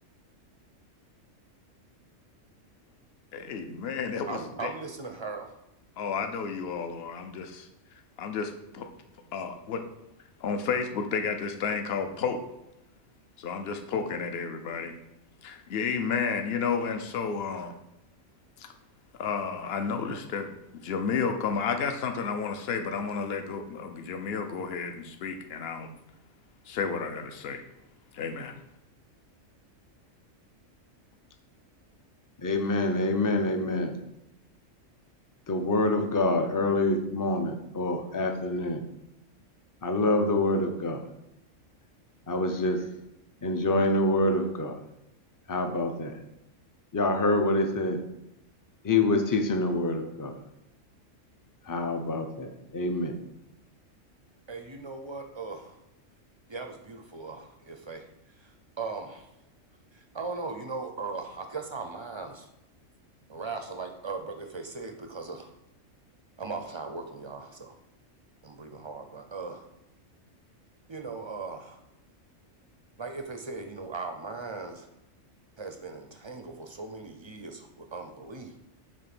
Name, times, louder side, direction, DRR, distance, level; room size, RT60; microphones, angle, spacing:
voice 1, 3.3-4.7 6.0-7.7 8.2-8.9 9.3-9.8 10.4-12.4 13.4-14.9 15.4-17.7 18.6-18.7 19.2-25.9 26.7-27.6 28.1-28.5, left 5 dB, 55° left, 6 dB, 0.9 m, -31 dB
voice 2, 4.3-5.6 54.5-55.8 56.5-58.1 58.4-58.5 58.8-59.3 59.9-62.5 63.3-65.5 66.4-67.7 68.4-69.6 70.9-71.8 73.0-74.9 75.6-78.5, right 4 dB, 40° right, 5 dB, 0.4 m, -38 dB
voice 3, 32.4-33.9 35.5-38.8 39.8-41.0 42.3-42.8 43.4-44.8 45.5-46.2 46.9-48.0 48.8-50.3 51.7-53.1, left 2 dB, 25° left, 5 dB, 0.4 m, -26 dB
7.5 x 3.2 x 6.0 m, 0.89 s
omnidirectional pair, 1.4 m